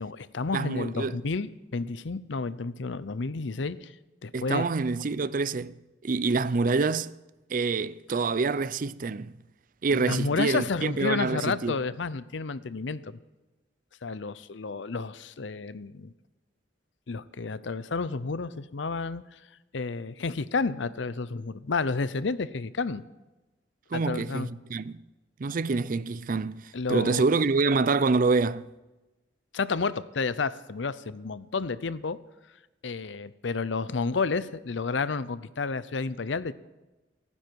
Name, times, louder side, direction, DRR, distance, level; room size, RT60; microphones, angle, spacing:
voice 1, 0.0-3.9 4.2-4.6 9.9-13.2 14.0-16.1 17.1-19.4 19.7-23.0 23.9-24.5 26.7-27.3 29.5-32.2 32.8-36.5, left 4 dB, 80° left, 0.7 m, -31 dB
voice 2, 0.5-1.2 4.3-5.7 6.0-7.1 7.5-9.3 9.8-11.8 23.9-25.0 25.4-28.7, right 4 dB, 45° right, 0.5 m, -26 dB
30.0 x 9.9 x 4.7 m
head